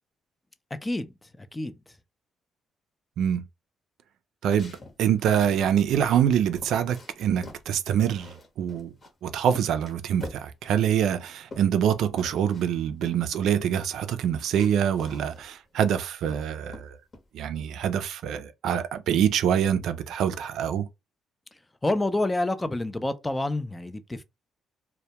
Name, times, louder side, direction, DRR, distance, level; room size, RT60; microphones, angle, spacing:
voice 1, 0.8-1.8 21.8-24.2, left 2 dB, 15° left, 0.3 m, -28 dB
voice 2, 4.4-8.9 9.2-17.0 17.3-20.9, right 9 dB, 80° right, 0.3 m, -25 dB
sound 1, 4.5-5.6 6.2-6.3 6.6-7.7 8.1-9.1 9.5-10.5 11.1-11.9 12.2-12.7 13.0-13.2 14.2-14.3 14.6-15.6 16.0-16.4 16.7-17.3, left 2 dB, 40° left, 0.9 m, -45 dB
2.1 x 2.1 x 2.8 m
cardioid pair, 90°, 0 cm